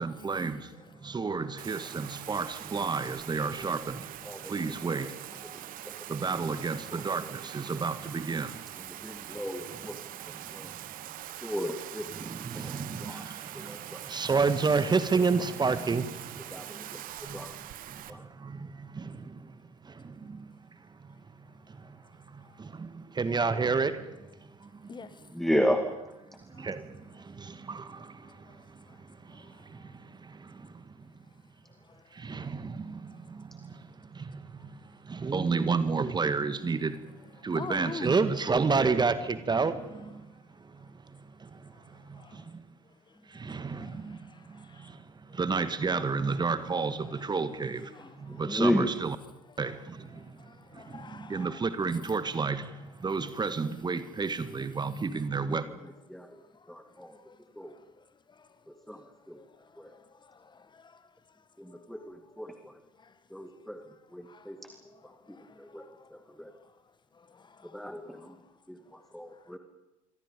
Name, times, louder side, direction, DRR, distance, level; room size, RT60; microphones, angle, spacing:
voice 1, 0.0-9.4 9.7-10.8 12.1-25.0 26.5-31.1 32.1-42.6 43.3-49.2 49.6-55.6, right 4 dB, 25° right, 1.7 m, -32 dB
Bathtub (filling or washing), 1.6-18.1, right 14 dB, 50° right, 1.4 m, -43 dB
voice 2, 9.0-10.0 10.5-10.7 11.4-12.1 12.6-12.7 13.0-13.3 13.5-14.0 16.5-17.0 17.3-17.5 18.1-18.2 25.4-25.8 48.3-48.9 56.1-56.3 56.7-57.2 57.6-57.7 58.9-59.0 59.3-59.4 59.8-59.9 61.6-62.7 63.3-63.8 64.1-64.6 65.3-65.8 66.4-66.5 67.7-68.3 68.7-68.8 69.1-69.6, equal, ahead, 2.3 m, -33 dB
voice 3, 16.8-17.5 22.4-22.6 24.9-25.3 26.5-26.8 28.2-29.0 29.3-29.9 31.9-32.4 34.6-34.7 37.4-38.2 41.7-42.4 43.1-44.9 47.0-47.2 47.9-48.5 50.1-51.6 53.1-53.2 56.5-61.3 61.7-62.6 63.0-63.6 63.9-66.7 67.1-68.4 68.9-69.5, left 4 dB, 25° left, 1.7 m, -51 dB
27.0 x 25.0 x 5.4 m
figure-of-eight pair, 60°, 18 cm